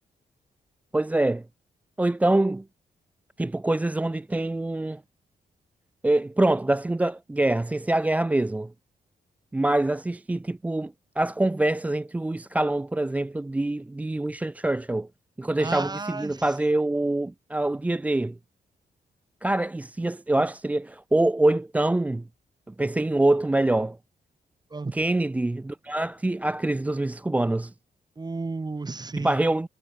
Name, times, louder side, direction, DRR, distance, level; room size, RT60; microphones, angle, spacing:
voice 1, 0.9-1.4 2.0-2.6 3.4-5.0 6.0-8.7 9.5-15.1 15.4-18.4 19.4-22.2 22.7-24.0 24.9-27.7 29.2-29.7, right 2 dB, 10° right, 0.3 m, -25 dB
voice 2, 15.6-16.4 24.7-24.9 28.2-29.4, right 3 dB, 25° right, 3.1 m, -33 dB
cardioid pair, 100°, 16 cm